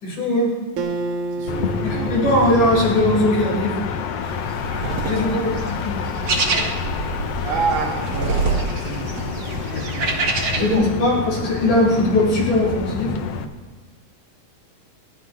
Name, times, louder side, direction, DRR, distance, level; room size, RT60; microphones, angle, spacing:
voice 1, 0.0-0.5 1.8-3.7 5.0-5.3 5.7-6.0 6.5-6.7 9.7-9.8 10.5-13.1, left 1 dB, 50° left, -5 dB, 6.3 m, -20 dB
Acoustic guitar, 0.8-4.3, right 3 dB, 65° right, 2.4 m, -31 dB
voice 2, 1.4-2.4 5.1-5.7 7.4-9.6 9.9-10.3 10.6-10.9, right 5 dB, 85° right, -1 dB, 4.2 m, -29 dB
sound 1, 1.5-13.4, left 6 dB, 85° left, 1.3 m, -28 dB
sound 2, 4.2-10.8, right 3 dB, 50° right, 1.8 m, -26 dB
28.5 x 14.0 x 3.3 m, 1.3 s
omnidirectional pair, 4.2 m